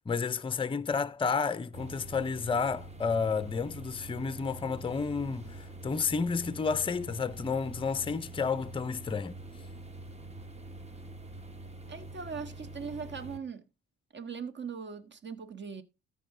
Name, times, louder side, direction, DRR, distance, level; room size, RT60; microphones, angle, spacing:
voice 1, 0.1-9.4, left 5 dB, 15° left, 0.6 m, -31 dB
sound 1, 1.7-13.4, right 2 dB, 20° right, 1.7 m, -45 dB
voice 2, 11.9-13.7 14.1-15.8, right 5 dB, 35° right, 1.6 m, -40 dB
13.5 x 5.5 x 3.8 m
cardioid pair, 90°, 30 cm